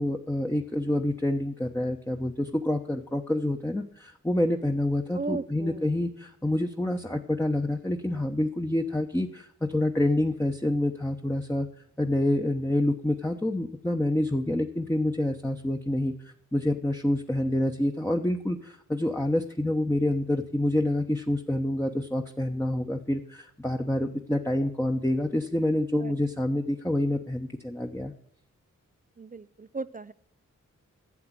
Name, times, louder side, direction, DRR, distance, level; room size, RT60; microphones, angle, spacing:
voice 1, 0.0-11.7 12.0-28.1, left 1 dB, 10° left, 3 dB, 1.0 m, -27 dB
voice 2, 5.1-5.9 26.0-26.1 29.2-30.1, right 3 dB, 25° right, 14 dB, 0.4 m, -36 dB
12.0 x 7.8 x 7.5 m, 0.68 s
cardioid pair, 65°, 31 cm